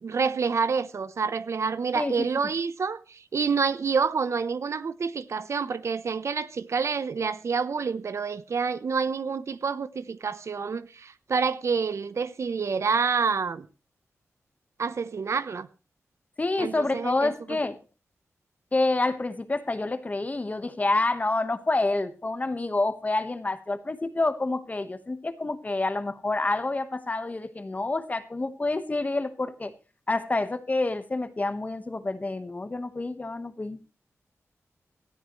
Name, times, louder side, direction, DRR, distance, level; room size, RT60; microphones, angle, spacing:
voice 1, 0.0-13.7 14.8-15.7 16.6-17.3, right 5 dB, 65° right, 0.8 m, -28 dB
voice 2, 1.9-2.3 16.4-17.8 18.7-29.7 30.1-33.8, left 2 dB, 30° left, 1.3 m, -28 dB
18.5 x 13.0 x 3.2 m
wide cardioid pair, 85°, 5 cm